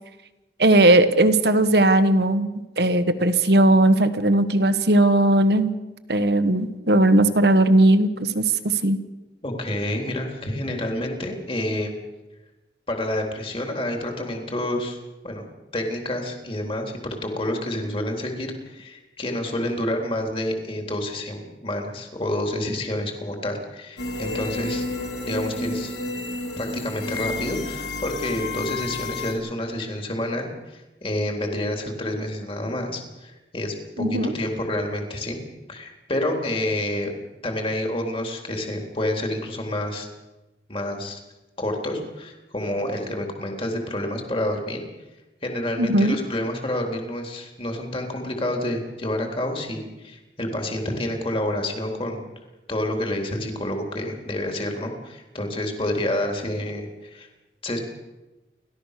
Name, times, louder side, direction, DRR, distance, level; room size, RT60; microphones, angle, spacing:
voice 1, 0.6-5.8 6.1-9.0 34.0-34.3 45.8-46.1, right 1 dB, 65° right, 10 dB, 1.5 m, -18 dB
voice 2, 9.4-12.0 12.9-15.0 15.2-15.4 15.7-24.8 25.2-25.9 26.6-35.4 35.7-37.1 37.4-40.1 40.7-41.2 41.6-44.8 45.4-52.2 52.7-57.3 57.6-57.8, left 1 dB, 30° left, 3 dB, 3.5 m, -28 dB
sound 1, 24.0-29.3, left 2 dB, 85° left, 4.5 m, -31 dB
30.0 x 13.0 x 6.7 m, 1.1 s
head